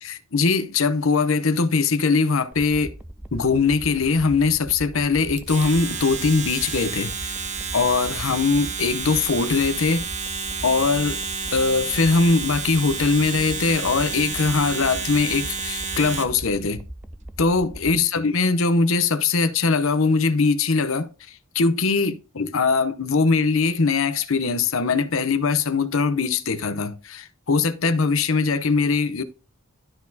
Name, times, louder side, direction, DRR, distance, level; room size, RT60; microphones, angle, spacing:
voice 1, 0.0-2.9 3.3-7.4 7.7-10.1 10.6-11.2 11.5-16.8 17.4-29.2, left 4 dB, 70° left, 0.8 m, -21 dB
sound 1, 2.5-18.0, right 1 dB, 5° right, 0.4 m, -39 dB
Domestic sounds home sounds, 5.4-16.4, right 5 dB, 35° right, 0.8 m, -30 dB
12.5 x 4.3 x 2.8 m
head